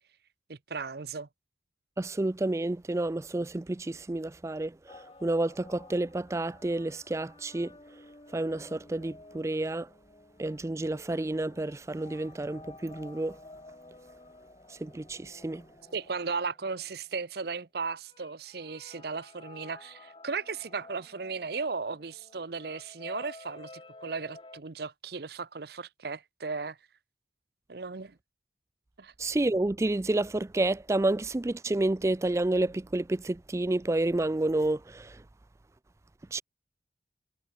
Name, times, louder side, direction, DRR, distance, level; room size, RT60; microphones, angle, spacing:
voice 1, 0.5-1.3 15.9-26.8 27.7-28.2 29.0-29.1, right 4 dB, 55° right, 0.8 m, -36 dB
voice 2, 2.0-7.7 8.3-9.9 10.4-13.4 14.7-15.7 29.2-35.2 36.3-36.4, right 2 dB, 15° right, 0.3 m, -30 dB
sound 1, 4.9-17.4 18.1-24.6, left 2 dB, 25° left, 1.7 m, -52 dB
head